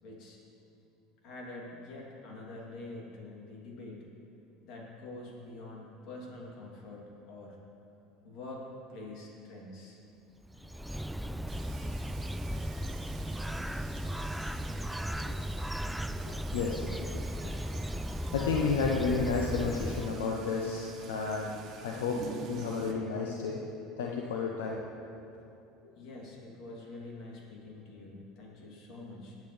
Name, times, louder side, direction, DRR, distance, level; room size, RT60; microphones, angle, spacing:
voice 1, 0.0-0.4 1.2-4.1 4.6-7.5 8.2-10.0 25.9-29.3, left 2 dB, 60° left, -3 dB, 3.2 m, -46 dB
Bird, 10.4-20.5, equal, 5° right, 0.3 m, -36 dB
sound 1, 11.5-22.9, right 6 dB, 50° right, 1.2 m, -49 dB
voice 2, 16.3-17.0 18.3-22.2 22.5-24.8 25.8-25.9, left 5 dB, 85° left, 0 dB, 0.8 m, -32 dB
20.0 x 8.4 x 3.4 m, 2.7 s
hypercardioid pair, 90°, 0 cm